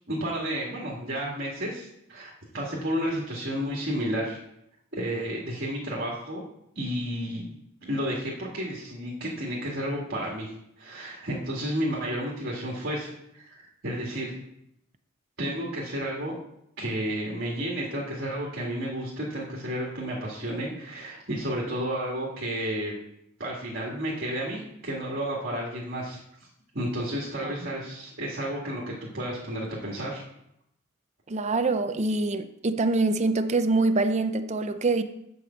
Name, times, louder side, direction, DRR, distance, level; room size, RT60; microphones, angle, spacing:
voice 1, 0.1-4.4 4.9-6.4 6.8-7.6 7.8-10.5 10.8-14.3 15.4-16.4 16.8-22.9 23.4-26.2 26.7-30.2, equal, 55° right, 1.9 m, -32 dB
voice 2, 31.3-35.0, right 3 dB, 35° right, 0.5 m, -25 dB
8.0 x 5.1 x 7.1 m
head